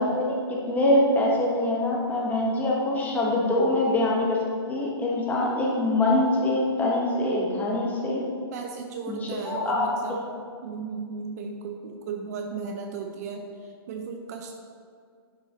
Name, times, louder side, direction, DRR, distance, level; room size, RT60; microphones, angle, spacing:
voice 1, 0.0-4.4 4.7-8.2 9.1-9.9, left 1 dB, 10° left, -3 dB, 1.4 m, -24 dB
voice 2, 8.5-10.2 10.6-14.5, right 5 dB, 40° right, 3 dB, 0.6 m, -35 dB
10.0 x 6.2 x 3.1 m, 2.2 s
hypercardioid pair, 135°, 13 cm